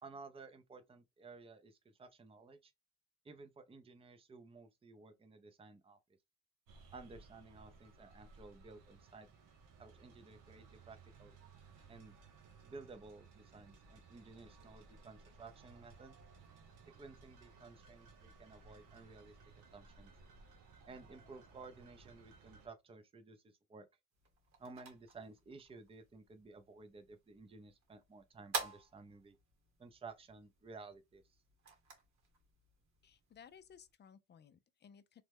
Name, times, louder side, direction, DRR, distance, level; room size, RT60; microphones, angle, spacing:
voice 1, 0.0-2.7 3.2-6.0 6.9-9.3 9.8-11.3 11.9-12.1 12.6-16.2 17.0-19.3 19.7-20.1 20.9-23.9 24.6-29.4 29.8-31.2, right 4 dB, 20° right, 0.5 m, -55 dB
sound 1, 6.7-22.7, right 4 dB, 85° right, 0.9 m, -60 dB
sound 2, 24.1-33.9, right 5 dB, 65° right, 1.4 m, -50 dB
voice 2, 33.0-35.2, left 7 dB, 35° left, 0.4 m, -59 dB
3.2 x 2.1 x 3.4 m
cardioid pair, 90°, 30 cm